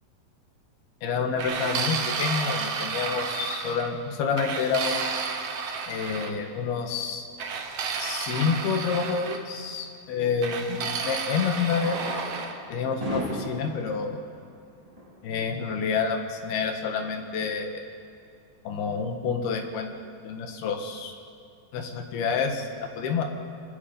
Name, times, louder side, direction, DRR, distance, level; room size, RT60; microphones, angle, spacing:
voice 1, 1.0-5.0 5.9-7.3 8.0-12.0 12.7-14.2 15.2-17.8 18.7-19.9 20.2-21.2 21.7-23.2, left 5 dB, 80° left, 4 dB, 3.5 m, -28 dB
sound 1, 1.4-3.9 4.4-6.3 7.4-9.4 10.4-12.5, right 5 dB, 60° right, 1.7 m, -31 dB
Fireworks, 8.0-8.1 10.4-10.5 11.5-15.3 16.0-16.1 16.3-16.4 16.6-16.7 17.2-17.5, equal, 10° right, 4.4 m, -36 dB
24.5 x 20.5 x 5.3 m, 2.4 s
omnidirectional pair, 4.5 m